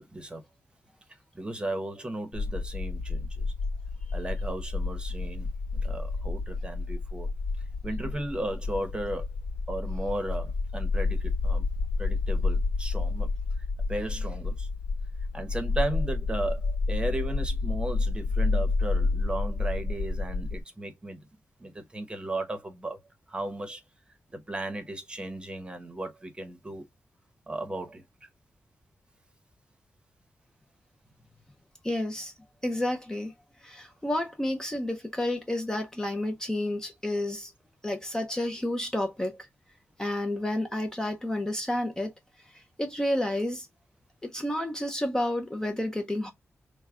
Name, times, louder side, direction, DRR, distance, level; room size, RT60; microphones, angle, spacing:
voice 1, 0.1-0.4 1.3-3.5 4.1-7.3 7.8-9.3 9.7-11.7 12.0-13.3 13.9-14.7 15.3-21.3 21.6-23.0 23.3-23.8 24.3-26.8 27.5-28.0, right 1 dB, 20° right, 0.8 m, -35 dB
sound 1, 2.3-20.6, left 3 dB, 65° left, 0.4 m, -30 dB
voice 2, 31.8-32.3 32.6-33.3 33.6-37.5 37.8-39.5 40.0-42.1 42.5-43.7 44.2-46.3, left 1 dB, 15° left, 0.5 m, -30 dB
4.5 x 2.1 x 3.6 m
wide cardioid pair, 135°, 5 cm